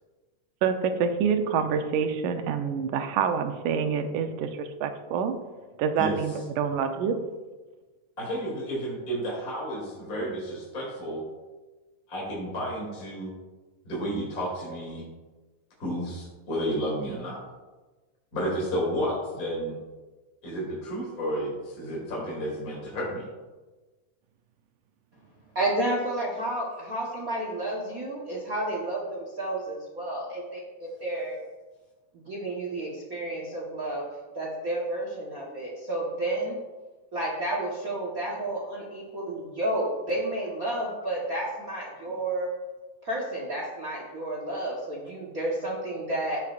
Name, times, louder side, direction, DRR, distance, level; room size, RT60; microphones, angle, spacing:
voice 1, 0.6-5.4 5.8-7.2, right 6 dB, 85° right, 7 dB, 2.3 m, -27 dB
voice 2, 8.3-11.2 12.1-13.3 13.8-15.0 15.8-17.4 18.3-19.8 20.4-23.2, equal, 30° left, -5 dB, 3.0 m, -31 dB
voice 3, 25.5-31.4 32.1-34.1 34.3-36.6 37.1-42.5 43.0-46.4, right 1 dB, 60° right, -3 dB, 0.8 m, -31 dB
15.0 x 6.7 x 2.5 m, 1.2 s
omnidirectional pair, 3.6 m